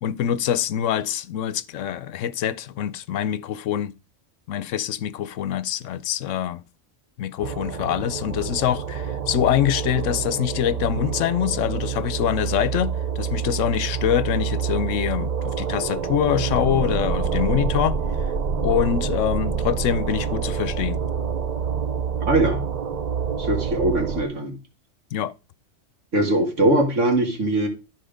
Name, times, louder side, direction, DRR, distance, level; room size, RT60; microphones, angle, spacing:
voice 1, 0.0-3.9 4.5-6.6 7.2-18.0 18.6-21.0 25.1-25.3, left 10 dB, 80° left, 1.0 m, -24 dB
sound 1, 7.4-24.2, right 6 dB, 40° right, 0.7 m, -27 dB
voice 2, 22.2-22.6 23.4-24.5 26.1-27.7, right 1 dB, 80° right, 2.3 m, -21 dB
12.5 x 4.5 x 5.0 m
omnidirectional pair, 1.3 m